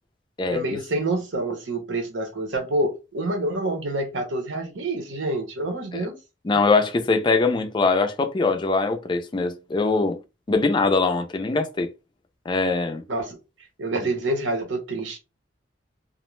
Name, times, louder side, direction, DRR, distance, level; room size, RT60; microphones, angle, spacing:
voice 1, 0.5-6.2 13.1-13.4 13.8-15.2, right 2 dB, 75° right, 0.8 m, -27 dB
voice 2, 6.4-10.2 10.5-11.9 12.5-13.0, left 3 dB, 25° left, 0.4 m, -22 dB
2.4 x 2.1 x 3.1 m
head